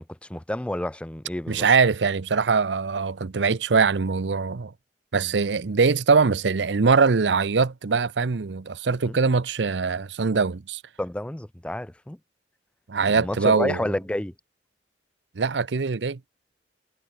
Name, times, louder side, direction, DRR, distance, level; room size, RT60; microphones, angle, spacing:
voice 1, 0.0-1.7 5.1-5.2 9.0-9.2 11.0-12.2 13.1-14.3, left 1 dB, 5° left, 0.4 m, -30 dB
voice 2, 1.5-4.7 5.1-10.8 12.9-13.8 15.4-16.2, right 5 dB, 85° right, 0.7 m, -22 dB
head